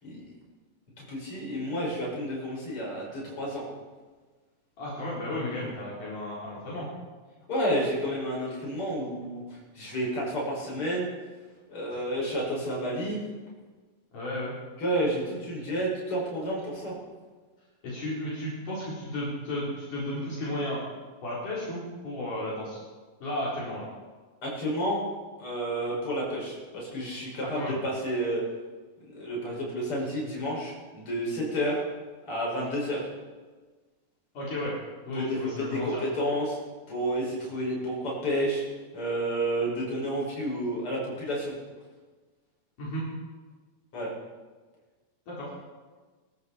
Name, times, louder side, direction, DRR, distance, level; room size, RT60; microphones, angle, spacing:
voice 1, 1.0-3.6 5.6-5.7 7.5-11.1 11.7-13.3 14.8-16.9 24.4-25.0 25.4-28.4 29.0-31.8 32.3-33.0 35.1-36.6 36.9-38.6 38.9-41.5 43.9-44.1, equal, 35° left, -4 dB, 6.5 m, -30 dB
voice 2, 4.8-6.9 11.9-12.0 14.1-14.5 17.8-20.8 21.2-22.8 23.2-23.8 27.4-27.8 34.4-34.7 35.1-35.9 42.8-43.0 45.3-45.5, left 1 dB, 60° left, -7 dB, 5.5 m, -33 dB
24.0 x 13.5 x 4.3 m, 1.4 s
omnidirectional pair, 4.1 m